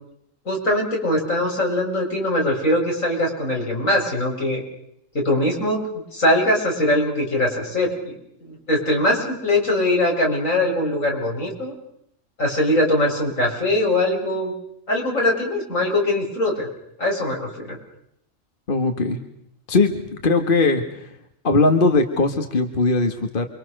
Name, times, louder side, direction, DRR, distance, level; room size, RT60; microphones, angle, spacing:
voice 1, 0.5-4.6 5.1-5.9 6.1-11.7 12.4-14.5 14.9-16.7 17.0-17.8, left 1 dB, 90° left, -1 dB, 7.6 m, -22 dB
voice 2, 18.7-19.2 19.7-21.1 21.4-23.5, left 3 dB, 40° left, 6 dB, 2.0 m, -20 dB
29.0 x 24.5 x 6.7 m, 0.75 s
omnidirectional pair, 1.3 m